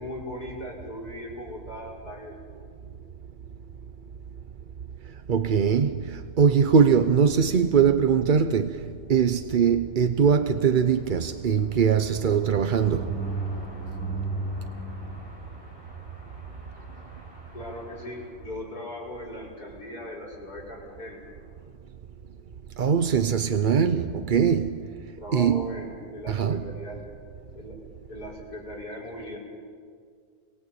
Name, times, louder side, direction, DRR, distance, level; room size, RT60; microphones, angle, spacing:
voice 1, 0.0-2.4 17.5-21.2 25.2-27.0 27.5-27.8 28.1-29.4, left 1 dB, 75° left, 6.4 m, -38 dB
voice 2, 5.3-8.8 9.1-13.1 22.8-24.8 25.3-25.8 26.3-26.6, right 6 dB, 45° right, 0.7 m, -22 dB
sound 1, 10.6-18.8 19.2-19.4 19.6-19.7 20.0-20.3, right 3 dB, 15° left, 7.0 m, -37 dB
29.0 x 22.0 x 8.5 m
omnidirectional pair, 1.7 m